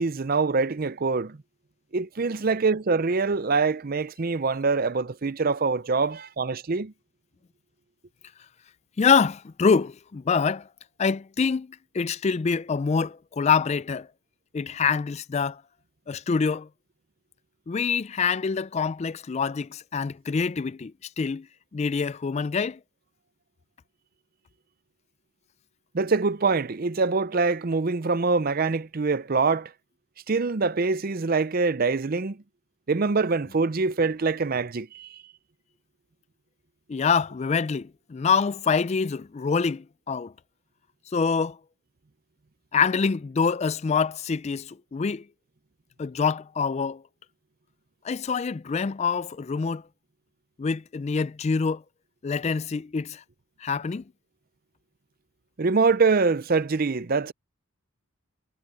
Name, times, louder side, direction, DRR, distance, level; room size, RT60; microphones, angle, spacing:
voice 1, 0.0-1.4 1.9-6.9 25.9-29.7 30.3-32.4 32.9-35.2 55.6-57.3, right 4 dB, 40° right, 0.5 m, -24 dB
voice 2, 9.0-10.7 11.0-14.1 14.5-15.6 16.1-16.7 17.7-21.5 21.7-22.8 36.9-40.3 41.1-41.6 42.7-45.2 46.0-47.0 48.0-49.8 50.6-51.8 52.2-53.2 53.6-54.0, left 5 dB, 30° left, 0.3 m, -25 dB
head